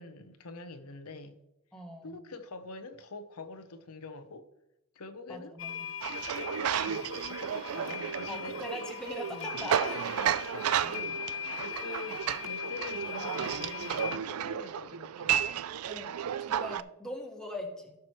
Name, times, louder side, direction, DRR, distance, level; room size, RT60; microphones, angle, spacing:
voice 1, 0.0-1.4 2.0-4.5 4.9-5.6 6.4-8.9 9.3-9.5 9.8-15.3, left 3 dB, 85° left, 0.9 m, -45 dB
voice 2, 1.7-2.2 5.3-5.7 8.3-9.9 15.9-16.1 16.5-17.9, equal, 5° left, 1.5 m, -41 dB
sound 1, 5.6-14.2, left 7 dB, 60° left, 0.6 m, -40 dB
sound 2, 6.0-16.8, right 9 dB, 80° right, 0.4 m, -33 dB
16.5 x 6.1 x 3.1 m
head